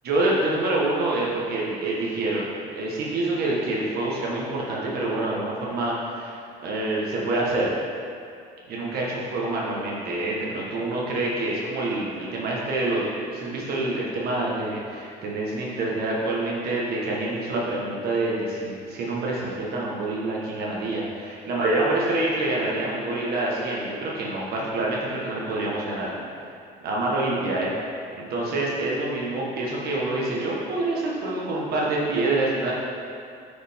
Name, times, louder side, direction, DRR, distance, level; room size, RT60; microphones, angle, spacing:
voice 1, 0.0-2.4 2.7-6.3 6.6-7.7 8.7-26.1 26.8-27.7 28.1-32.7, right 2 dB, 70° right, -4 dB, 1.4 m, -26 dB
8.5 x 5.1 x 3.6 m, 2.4 s
cardioid pair, 110°, 17 cm